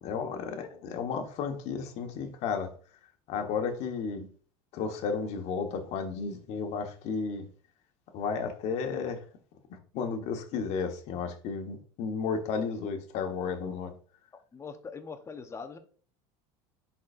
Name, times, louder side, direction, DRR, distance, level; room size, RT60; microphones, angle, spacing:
voice 1, 0.0-2.7 3.3-4.3 4.7-7.5 8.1-9.2 9.7-13.9, left 5 dB, 55° left, 5 dB, 1.4 m, -33 dB
voice 2, 14.5-15.8, left 5 dB, 20° left, 7 dB, 1.0 m, -42 dB
10.5 x 4.2 x 2.6 m, 0.43 s
supercardioid pair, 115°, 13 cm